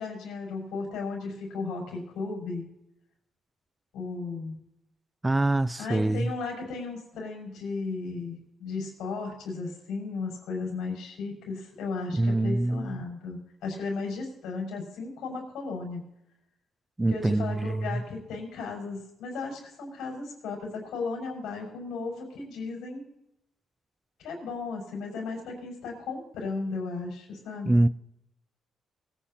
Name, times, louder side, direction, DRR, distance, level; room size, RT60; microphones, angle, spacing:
voice 1, 0.0-2.6 3.9-4.6 5.8-16.0 17.1-23.0 24.2-27.8, left 4 dB, 85° left, 5.9 m, -35 dB
voice 2, 5.2-6.3 12.1-13.0 17.0-18.0 27.7-27.9, right 2 dB, 15° right, 0.4 m, -25 dB
23.0 x 10.0 x 2.9 m
cardioid pair, 90°, 0 cm